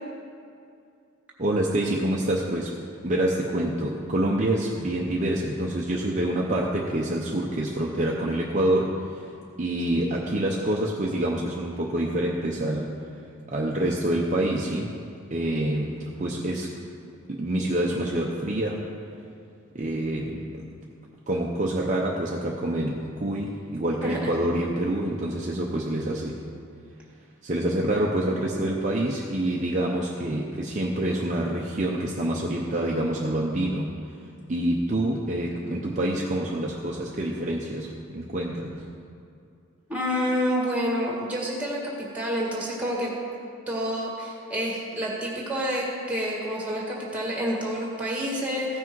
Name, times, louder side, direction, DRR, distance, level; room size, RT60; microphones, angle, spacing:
voice 1, 1.4-2.8 3.0-9.2 9.6-12.9 13.5-15.0 15.3-16.7 17.3-18.9 19.7-20.7 21.3-26.4 27.4-33.9 34.5-38.8, right 1 dB, 35° right, -2 dB, 0.6 m, -27 dB
voice 2, 39.9-43.1 43.7-48.8, equal, 5° right, -3 dB, 1.7 m, -28 dB
15.5 x 6.0 x 4.6 m, 2.4 s
head